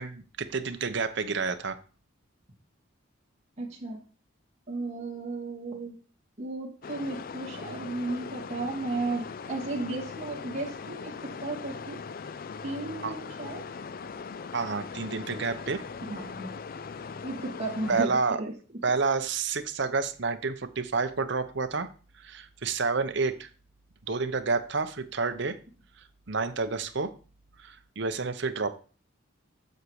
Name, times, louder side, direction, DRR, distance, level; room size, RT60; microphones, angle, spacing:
voice 1, 0.0-1.8 13.0-13.1 14.5-15.8 17.9-18.4 18.8-21.9 22.2-23.5 24.1-25.6 26.3-27.1 27.6-28.7, right 4 dB, 60° right, 9 dB, 0.9 m, -29 dB
voice 2, 3.6-4.0 4.7-5.9 6.4-12.0 12.6-13.6 16.0-16.5 17.2-18.5, right 2 dB, 35° right, -2 dB, 2.6 m, -34 dB
sound 1, 6.8-18.1, left 5 dB, 45° left, 0.4 m, -40 dB
8.0 x 6.4 x 4.8 m, 0.37 s
head